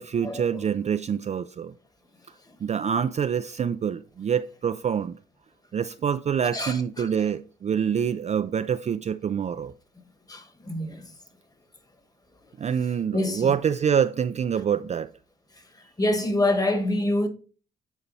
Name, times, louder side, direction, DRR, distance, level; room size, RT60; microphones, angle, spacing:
voice 1, 0.0-1.7 2.6-5.2 5.7-9.7 12.6-15.1, right 8 dB, 35° right, 0.4 m, -26 dB
voice 2, 6.5-7.1 10.3-11.0 13.1-13.5 16.0-17.3, left 1 dB, 20° left, 1.4 m, -26 dB
9.6 x 4.3 x 4.1 m
cardioid pair, 90°, 20 cm